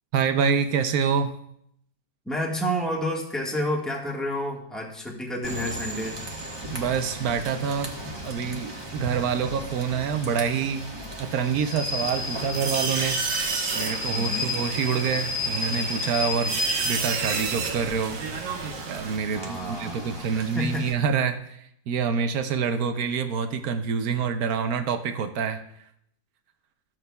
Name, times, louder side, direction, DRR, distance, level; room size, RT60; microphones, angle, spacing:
voice 1, 0.1-1.3 6.7-8.0 8.2-10.8 11.2-13.5 13.7-16.6 16.8-18.2 18.9-25.6, right 6 dB, 70° right, 9 dB, 0.9 m, -26 dB
voice 2, 2.2-6.2 14.1-14.5 19.3-20.9, equal, ahead, -2 dB, 1.2 m, -30 dB
Rain / Train, 5.4-20.9, left 1 dB, 20° right, 0.8 m, -34 dB
sound 1, 12.0-19.2, right 5 dB, 90° right, 1.7 m, -31 dB
13.5 x 7.4 x 2.3 m, 0.73 s
omnidirectional pair, 2.1 m